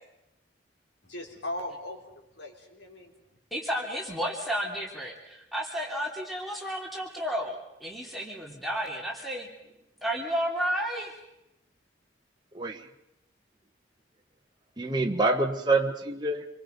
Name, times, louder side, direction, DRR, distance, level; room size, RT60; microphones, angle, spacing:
voice 1, 1.0-3.1, left 1 dB, 75° left, 2 dB, 3.6 m, -39 dB
voice 2, 3.5-9.5 10.0-11.1, equal, ahead, -2 dB, 3.1 m, -32 dB
voice 3, 12.5-12.9 14.8-16.4, right 2 dB, 25° right, 2 dB, 1.3 m, -26 dB
27.5 x 22.5 x 5.3 m, 0.89 s
head